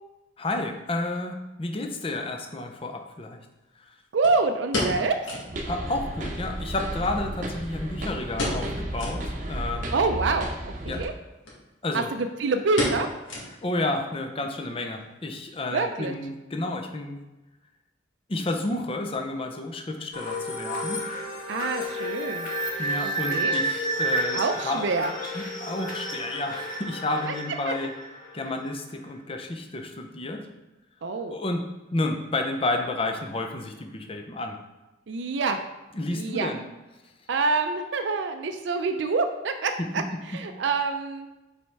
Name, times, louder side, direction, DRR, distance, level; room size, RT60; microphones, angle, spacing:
voice 1, 0.4-3.4 3.8-3.9 5.7-9.8 10.8-11.0 11.8-12.1 13.5-17.2 18.3-21.0 22.8-24.8 25.3-27.9 28.3-30.4 31.3-31.6 31.9-34.6 35.9-36.6 39.8-40.4, left 2 dB, 30° left, 4 dB, 0.6 m, -31 dB
voice 2, 4.1-5.2 9.9-10.5 10.9-11.1 11.9-13.1 15.7-16.1 21.5-22.5 23.3-23.5 24.3-25.1 27.6-27.7 31.0-31.4 35.1-35.6 36.1-36.5 37.3-40.0 40.3-41.3, right 4 dB, 70° right, 6 dB, 0.4 m, -26 dB
sound 1, 4.2-5.6 5.9-6.0 6.3-6.4 7.0-7.9 8.3-8.7 9.0-9.2 9.7-9.8 10.8-11.1 11.4-11.6 11.9-12.2 12.8-13.8 14.1-14.2 14.8-15.1 15.4-15.5, left 1 dB, 90° left, 1.8 m, -31 dB
sound 2, 5.5-11.1, right 1 dB, 40° right, 0.8 m, -33 dB
sound 3, 20.1-28.7, right 1 dB, 45° left, 1.5 m, -31 dB
5.3 x 4.2 x 4.6 m, 1.0 s
head